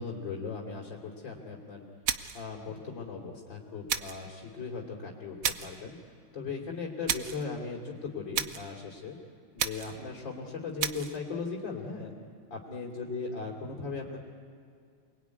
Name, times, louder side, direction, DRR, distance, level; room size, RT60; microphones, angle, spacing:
voice 1, 0.0-1.8 2.3-6.0 6.3-9.2 9.5-12.1 12.5-14.2, left 4 dB, 60° left, -3 dB, 3.7 m, -38 dB
sound 1, 2.1-2.5 3.9-4.3 5.4-5.8 7.1-7.4 8.3-8.7 9.6-10.0 10.8-11.2, right 8 dB, 55° right, 1.1 m, -32 dB
28.0 x 21.5 x 9.6 m, 2.3 s
omnidirectional pair, 2.2 m